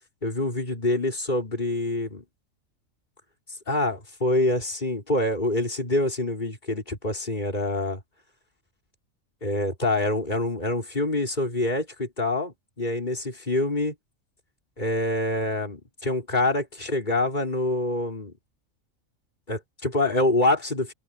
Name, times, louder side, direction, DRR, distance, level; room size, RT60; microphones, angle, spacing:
voice 1, 0.2-2.2 3.7-8.0 9.4-13.9 14.8-18.3 19.5-20.9, left 2 dB, 35° left, 4.9 m, -26 dB
omnidirectional pair, 1.4 m